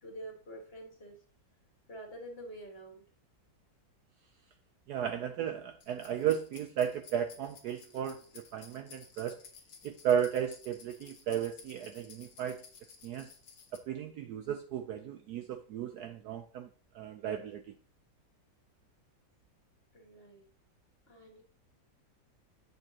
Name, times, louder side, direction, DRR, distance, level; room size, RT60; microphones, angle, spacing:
voice 1, 0.0-1.2 1.9-3.1 19.9-20.5 21.1-21.4, right 1 dB, 35° left, 1 dB, 1.7 m, -47 dB
voice 2, 4.9-9.4 9.8-12.6 13.0-13.3 13.7-16.7 16.9-17.6, right 9 dB, 70° right, 8 dB, 1.0 m, -34 dB
sound 1, 5.8-13.8, left 6 dB, 80° left, 2.0 m, -55 dB
8.2 x 7.1 x 2.9 m, 0.41 s
omnidirectional pair, 2.1 m